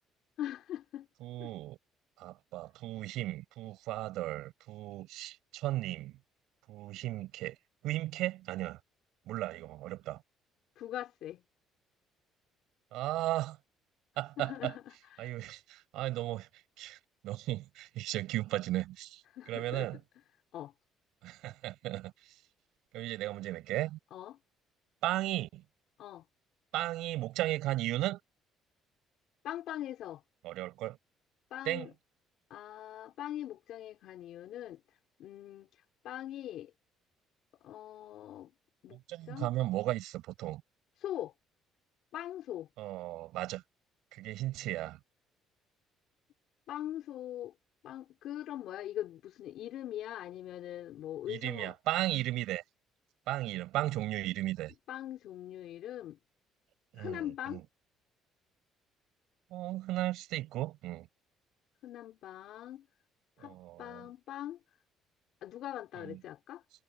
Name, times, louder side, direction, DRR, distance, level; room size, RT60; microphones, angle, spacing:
voice 1, 0.4-1.1 1.4-1.5 10.8-11.4 14.4-14.8 15.1-15.3 19.3-19.9 20.5-20.7 24.1-24.4 26.0-26.3 29.4-30.2 31.5-31.9 32.5-34.8 35.2-35.7 36.0-36.7 37.6-38.5 38.8-39.0 39.3-39.5 41.0-41.3 42.1-42.7 46.7-47.5 47.8-51.7 54.9-56.2 56.9-57.6 61.8-62.9 63.4-64.6 65.4-66.6, left 12 dB, 60° left, 3.9 m, -41 dB
voice 2, 1.2-1.8 2.2-6.2 6.7-7.6 7.8-8.8 9.3-10.2 12.9-13.6 14.2-14.7 15.2-16.5 16.8-17.0 17.2-20.0 21.2-22.3 22.9-24.0 25.0-25.6 26.7-28.2 30.4-31.0 31.6-31.9 38.9-40.6 42.8-43.6 44.1-45.0 51.3-52.6 53.3-54.7 56.9-57.6 59.5-61.1 63.4-64.1 66.0-66.2, right 16 dB, 80° right, 6.9 m, -35 dB
cardioid pair, 165°, 0 cm